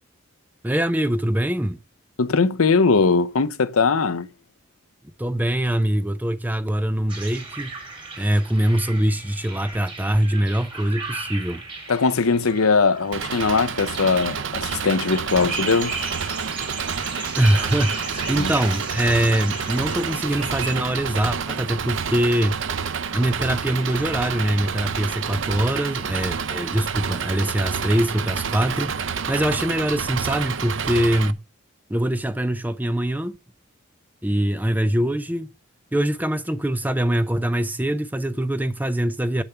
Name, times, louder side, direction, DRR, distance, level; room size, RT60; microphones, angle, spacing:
voice 1, 0.6-1.8 5.2-7.7 8.2-11.6 17.4-22.6 23.1-31.4 31.9-33.4 34.2-35.5 35.9-39.4, right 1 dB, 10° right, 0.5 m, -23 dB
voice 2, 2.2-4.3 11.9-15.9 18.4-18.5, left 4 dB, 90° left, 0.8 m, -20 dB
sound 1, 7.1-20.8, right 3 dB, 25° right, 2.8 m, -35 dB
Engine, 13.1-31.3, right 6 dB, 65° right, 0.7 m, -29 dB
8.2 x 6.9 x 5.6 m
head